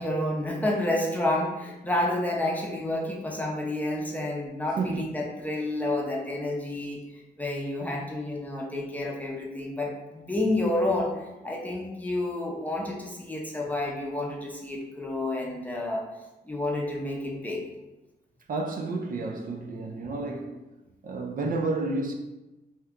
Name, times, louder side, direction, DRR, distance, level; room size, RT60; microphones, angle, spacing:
voice 1, 0.0-11.1 11.4-16.1 16.4-17.6 20.2-20.3, left 1 dB, 10° left, 0.6 m, -30 dB
voice 2, 4.8-5.1 18.5-20.6 21.0-22.1, right 3 dB, 55° right, 0.4 m, -30 dB
2.8 x 2.3 x 3.5 m
cardioid pair, 95°, 17 cm